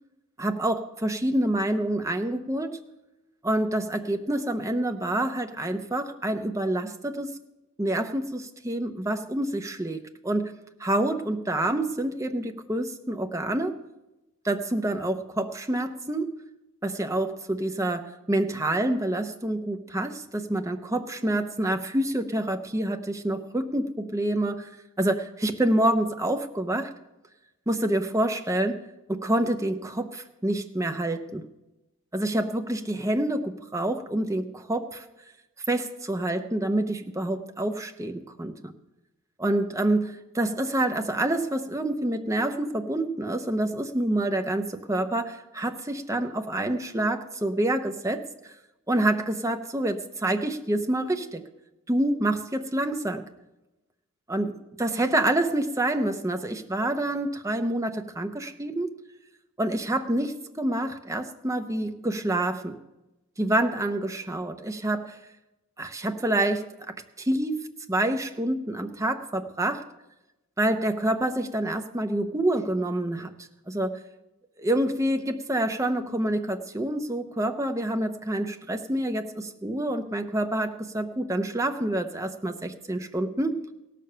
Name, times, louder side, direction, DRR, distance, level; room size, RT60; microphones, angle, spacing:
voice 1, 0.4-2.8 3.4-7.4 7.8-10.5 10.8-13.8 14.4-16.4 16.8-24.7 25.0-26.9 27.7-28.8 29.1-31.4 32.1-35.0 35.7-38.7 39.4-48.2 48.9-51.4 51.9-53.2 54.3-58.9 59.6-62.8 63.4-65.2 65.8-67.6 67.9-69.8 70.6-73.3 73.7-74.0 74.6-83.6, right 1 dB, 15° right, 6 dB, 0.7 m, -27 dB
17.0 x 6.7 x 6.7 m, 0.98 s
head